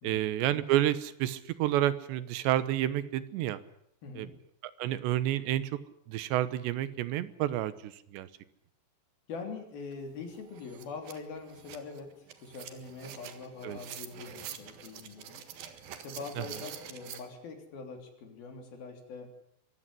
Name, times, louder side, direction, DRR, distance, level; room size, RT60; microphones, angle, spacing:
voice 1, 0.0-3.6 4.1-4.3 4.6-5.7 6.1-8.3 13.6-13.8 16.4-16.5, right 13 dB, 90° right, 15 dB, 3.3 m, -30 dB
voice 2, 9.3-15.4 15.7-19.3, left 4 dB, 60° left, 5 dB, 5.1 m, -43 dB
sound 1, 9.9-10.0 10.3-17.2, right 9 dB, 65° right, 3.3 m, -46 dB
24.5 x 15.5 x 9.9 m, 0.72 s
omnidirectional pair, 4.9 m